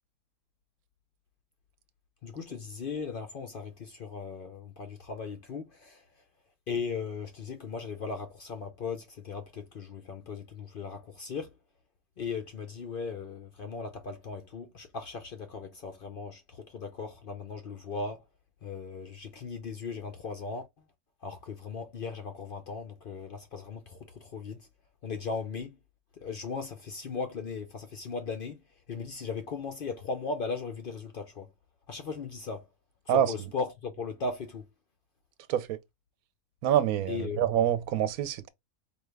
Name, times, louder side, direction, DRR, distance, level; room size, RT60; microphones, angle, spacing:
voice 1, 2.2-6.0 6.7-11.5 12.2-18.2 18.6-20.7 21.2-24.7 25.0-25.7 26.2-28.6 28.9-31.5 31.9-32.6 33.1-34.6 37.1-37.5, left 4 dB, 75° left, 0.5 m, -37 dB
voice 2, 36.6-38.5, right 10 dB, 70° right, 1.0 m, -26 dB
4.9 x 2.3 x 3.2 m
omnidirectional pair, 1.7 m